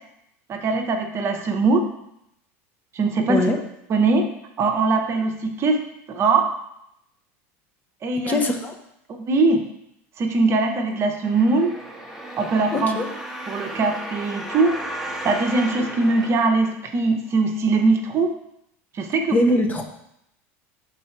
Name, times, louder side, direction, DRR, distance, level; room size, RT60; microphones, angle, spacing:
voice 1, 0.5-1.8 2.9-3.4 3.9-4.3 4.6-5.8 6.1-6.5 8.0-8.4 9.1-9.6 10.2-11.7 12.4-13.0 13.5-14.8 15.2-18.3 19.0-19.4, right 3 dB, 40° right, 4 dB, 0.9 m, -21 dB
voice 2, 8.3-8.7 12.7-13.1 19.3-19.8, left 1 dB, 20° left, 4 dB, 0.9 m, -21 dB
sound 1, 11.2-17.2 17.8-17.9, right 1 dB, ahead, 1.2 m, -34 dB
6.2 x 4.0 x 4.5 m, 0.79 s
supercardioid pair, 105°, 7 cm